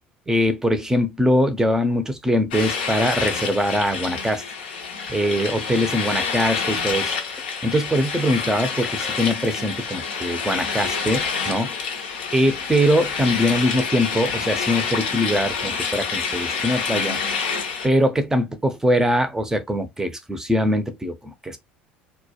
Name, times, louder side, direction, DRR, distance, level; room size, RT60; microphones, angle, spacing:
voice 1, 0.3-4.4 5.1-7.1 7.6-11.8 12.3-17.2 17.8-21.6, equal, 10° right, 0.5 m, -22 dB
sound 1, 2.5-17.9, left 5 dB, 70° left, 0.5 m, -27 dB
2.2 x 2.1 x 2.8 m
figure-of-eight pair, 65°, 6 cm